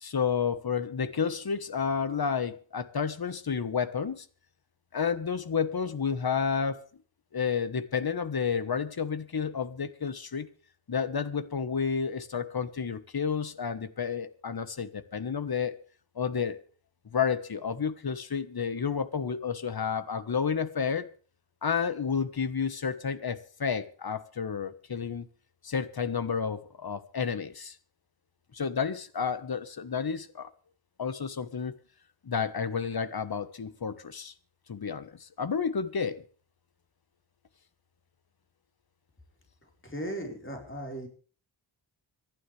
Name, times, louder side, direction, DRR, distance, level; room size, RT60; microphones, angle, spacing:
voice 1, 0.0-4.3 4.9-6.9 7.3-10.5 10.9-15.8 16.1-16.6 17.1-21.1 21.6-25.2 25.6-27.7 28.5-30.5 31.0-31.7 32.2-34.3 34.7-36.2, left 6 dB, 55° left, 1.4 m, -31 dB
voice 2, 39.6-41.1, right 1 dB, 25° left, 4.6 m, -37 dB
26.0 x 11.5 x 3.4 m
wide cardioid pair, 75°, 45 cm